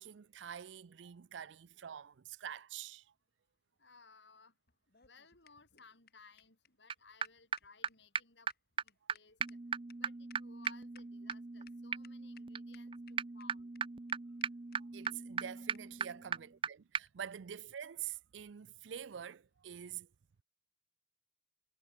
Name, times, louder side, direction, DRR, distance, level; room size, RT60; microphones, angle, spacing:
voice 1, 0.0-3.0 14.8-20.1, right 9 dB, 80° right, 0.5 m, -46 dB
voice 2, 3.8-4.5 5.0-8.5 8.8-9.6 10.0-13.7, left 4 dB, 70° left, 7.3 m, -61 dB
sound 1, 4.7-11.4 11.7-11.8 12.0-12.4 12.7-13.4 13.7-13.8 14.1-14.2 14.4-14.5 14.7-14.8 15.0-15.1 15.4-15.5 15.7-15.8 16.1-16.2 17.0-17.2, left 9 dB, 55° left, 1.8 m, -63 dB
sound 2, 6.9-7.0 7.2-7.3 7.5-7.6 7.8-7.9 8.1-8.2 8.5-8.6 8.8-8.9 9.1-9.2 9.4-16.7 16.9-17.0, right 6 dB, 30° right, 0.5 m, -39 dB
head